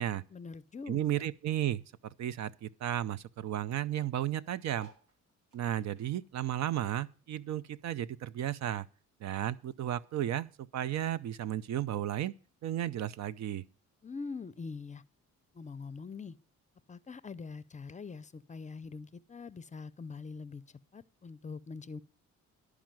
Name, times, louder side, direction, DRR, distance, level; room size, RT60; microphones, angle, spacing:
voice 1, 0.3-1.0 14.0-15.0 15.5-16.4 16.9-20.6 20.9-22.0, left 4 dB, 25° left, 0.5 m, -43 dB
voice 2, 0.9-1.8 2.2-4.9 5.5-8.9 9.2-12.3 12.6-13.6, right 12 dB, 65° right, 0.6 m, -34 dB
sound 1, 4.7-7.5 7.8-9.4 9.9-10.0 10.1-10.2 10.4-10.8 11.6-11.7, right 3 dB, 80° right, 1.5 m, -62 dB
11.5 x 4.9 x 7.5 m
cardioid pair, 90°, 30 cm